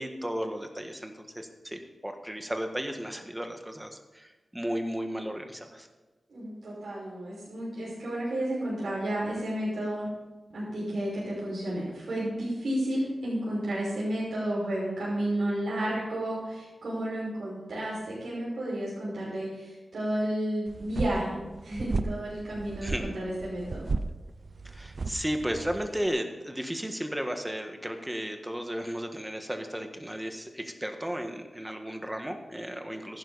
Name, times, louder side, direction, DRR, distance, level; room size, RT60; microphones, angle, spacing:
voice 1, 0.0-5.9 22.8-23.1 24.7-33.2, equal, 10° right, 5 dB, 1.6 m, -34 dB
voice 2, 6.3-10.1 10.5-23.9, right 1 dB, 85° right, -8 dB, 5.6 m, -32 dB
sound 1, 20.7-26.1, right 3 dB, 50° right, 0.7 m, -35 dB
15.0 x 12.0 x 4.2 m, 1.2 s
wide cardioid pair, 105°, 0 cm